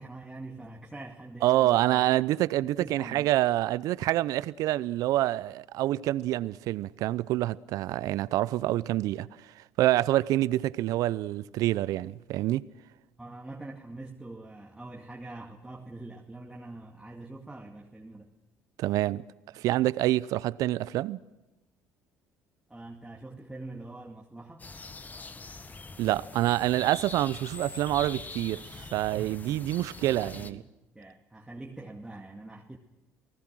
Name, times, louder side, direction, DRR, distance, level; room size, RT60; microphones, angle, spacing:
voice 1, 0.0-2.0 2.8-3.4 13.2-18.3 22.7-24.7 30.1-32.8, right 2 dB, 10° right, 2.2 m, -44 dB
voice 2, 1.4-9.3 9.6-12.6 18.8-19.2 19.5-21.2 26.0-30.6, right 15 dB, 65° right, 0.6 m, -27 dB
sound 1, 24.6-30.5, left 3 dB, 25° left, 1.6 m, -43 dB
28.5 x 18.5 x 6.3 m
hypercardioid pair, 65°, 6 cm